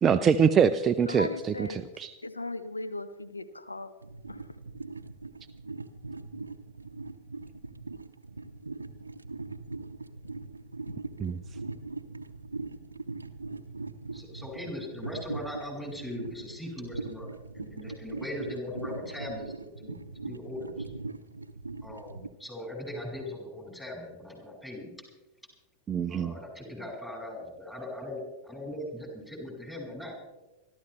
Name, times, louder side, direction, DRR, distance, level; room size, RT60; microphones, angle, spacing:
voice 1, 0.0-2.1 11.2-11.4 25.9-26.3, right 7 dB, 25° right, 9 dB, 0.6 m, -24 dB
voice 2, 1.1-1.8 2.2-3.9 4.3-4.4, left 2 dB, 80° left, 12 dB, 0.7 m, -37 dB
sound 1, 4.0-22.3, right 3 dB, 80° right, 0.8 m, -41 dB
voice 3, 14.1-20.9 21.8-24.9 26.1-30.2, left 1 dB, 5° left, -1 dB, 5.9 m, -40 dB
26.5 x 13.0 x 3.2 m, 1.1 s
figure-of-eight pair, 90°, 0 cm